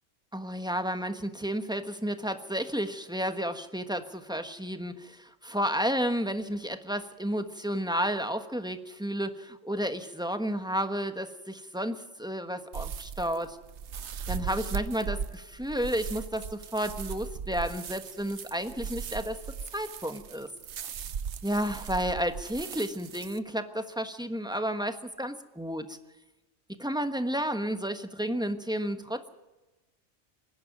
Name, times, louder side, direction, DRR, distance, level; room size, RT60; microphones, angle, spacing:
voice 1, 0.3-13.6 14.3-19.4 19.7-20.5 21.4-26.0 26.8-29.3, equal, 5° right, 8 dB, 1.2 m, -32 dB
sound 1, 12.7-23.4, right 7 dB, 65° right, 1.1 m, -38 dB
26.0 x 10.5 x 9.4 m, 1.1 s
omnidirectional pair, 1.3 m